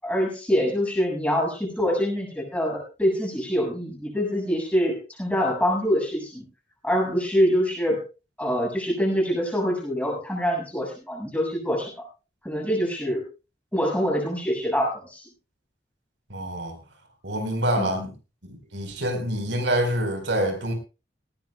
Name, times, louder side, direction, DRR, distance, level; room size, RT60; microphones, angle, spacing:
voice 1, 0.0-6.5 6.8-8.0 8.4-12.1 12.4-13.2 13.7-15.2 17.8-18.0, equal, 10° left, 0 dB, 7.4 m, -25 dB
voice 2, 16.3-16.8 17.2-18.1 18.5-20.7, right 1 dB, 80° right, 5 dB, 4.9 m, -26 dB
19.0 x 18.0 x 2.4 m, 0.32 s
head